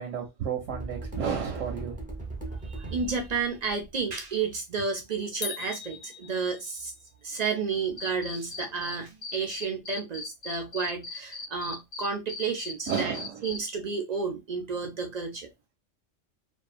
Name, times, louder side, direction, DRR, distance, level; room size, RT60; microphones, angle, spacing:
voice 1, 0.0-2.0 12.9-13.4, right 7 dB, 90° right, 1.0 m, -32 dB
sound 1, 0.7-4.1, right 3 dB, 10° right, 0.6 m, -38 dB
voice 2, 2.5-6.9 7.2-13.2 13.4-15.5, right 5 dB, 65° right, 0.4 m, -31 dB
sound 2, 5.4-7.0, left 7 dB, 75° left, 0.9 m, -39 dB
Cricket, 8.0-8.9 9.2-13.6, left 3 dB, 50° left, 0.5 m, -37 dB
2.6 x 2.3 x 2.4 m
omnidirectional pair, 1.3 m